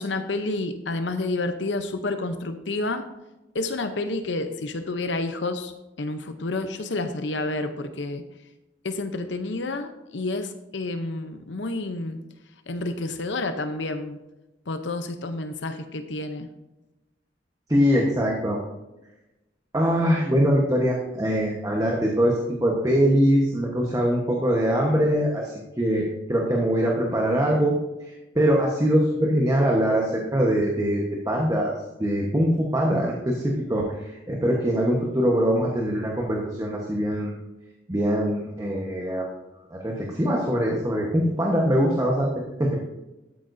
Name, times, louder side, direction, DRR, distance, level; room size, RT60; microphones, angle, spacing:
voice 1, 0.0-3.0 3.5-5.7 6.0-8.2 8.8-12.2 12.7-14.2 14.7-16.5, left 2 dB, 80° left, 8 dB, 0.7 m, -29 dB
voice 2, 17.7-18.6 19.7-27.8 28.3-31.7 32.0-33.8 34.3-37.3 37.9-39.3 39.7-42.3 42.6-42.8, equal, 20° right, -1 dB, 1.2 m, -22 dB
12.5 x 8.7 x 2.7 m, 1.0 s
head